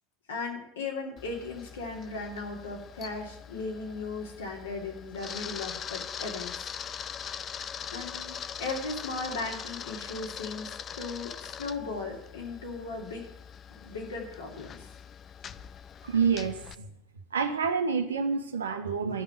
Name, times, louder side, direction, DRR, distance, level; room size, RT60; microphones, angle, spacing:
voice 1, 0.3-6.7 7.9-13.3 13.8-14.9, left 3 dB, 80° left, 0 dB, 3.1 m, -37 dB
Camera, 1.2-16.8, left 7 dB, 35° left, 0.6 m, -42 dB
voice 2, 16.0-16.9 17.3-19.2, right 5 dB, 90° right, 6 dB, 1.3 m, -28 dB
13.0 x 5.9 x 9.2 m, 0.76 s
hypercardioid pair, 85°, 0 cm